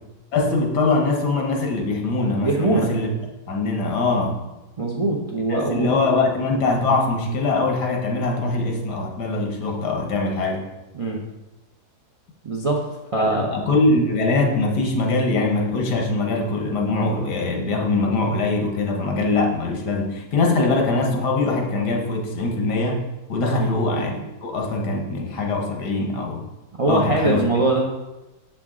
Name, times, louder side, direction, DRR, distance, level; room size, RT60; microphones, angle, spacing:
voice 1, 0.3-3.1 3.5-4.3 5.5-10.6 13.2-26.5 26.9-27.4, left 3 dB, 85° left, 2 dB, 1.6 m, -22 dB
voice 2, 2.4-2.9 4.8-5.9 10.9-11.2 12.4-12.8 13.1-13.5 23.5-23.8 26.8-27.9, right 2 dB, 50° right, 0 dB, 0.4 m, -22 dB
7.0 x 5.0 x 3.6 m, 1.0 s
omnidirectional pair, 1.7 m